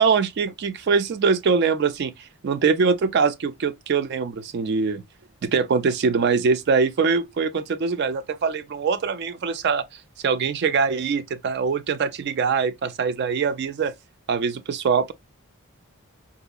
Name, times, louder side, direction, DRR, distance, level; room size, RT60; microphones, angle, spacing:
voice 1, 0.0-5.0 5.4-9.8 10.2-13.9 14.3-15.1, right 5 dB, 50° right, 0.3 m, -23 dB
3.7 x 2.5 x 2.3 m
head